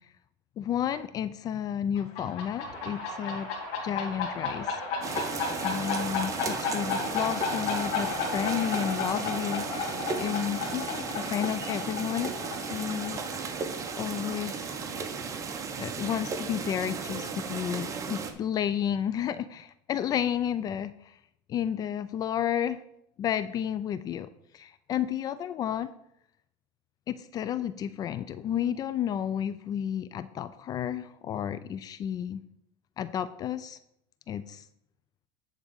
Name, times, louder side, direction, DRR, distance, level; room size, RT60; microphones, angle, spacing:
voice 1, 0.6-3.5 3.8-4.8 5.6-12.3 12.6-13.2 14.0-14.8 15.8-21.2 21.5-22.8 23.2-25.9 27.1-32.4 33.0-33.8 34.3-34.6, left 9 dB, 40° left, 14 dB, 0.5 m, -32 dB
sound 1, 2.0-15.3, left 5 dB, 65° left, 2.1 m, -34 dB
Guitar, 2.7-11.2 11.6-12.0, right 7 dB, 60° right, 1.2 m, -46 dB
sound 2, 5.0-18.3, right 5 dB, 30° right, 1.1 m, -35 dB
10.0 x 3.9 x 6.4 m, 0.75 s
supercardioid pair, 110°, 10 cm